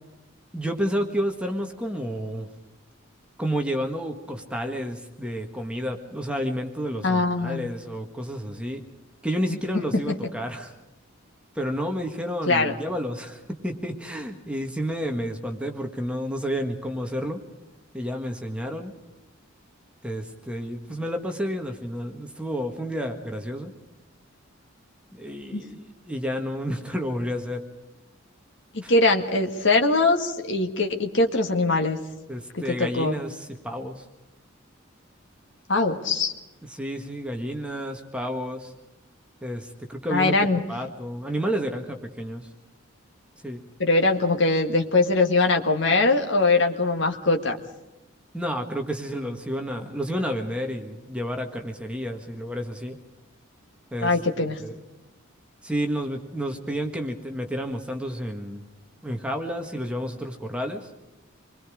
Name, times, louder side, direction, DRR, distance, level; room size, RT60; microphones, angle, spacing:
voice 1, 0.5-2.5 3.4-8.8 9.2-10.7 11.6-17.4 17.9-18.9 20.0-23.7 25.1-27.6 28.8-28.9 32.3-34.1 36.6-38.7 39.4-40.3 40.7-42.5 43.4-43.6 48.3-53.0 53.9-54.2 54.6-54.8 55.6-58.6 59.0-60.9, equal, 5° right, 3 dB, 1.6 m, -30 dB
voice 2, 7.0-7.7 12.5-12.7 25.5-25.6 28.9-32.0 32.5-33.2 35.7-36.3 40.1-40.6 43.8-47.6 54.0-54.6, left 3 dB, 60° left, 3 dB, 1.8 m, -22 dB
27.5 x 21.5 x 5.0 m, 1.0 s
head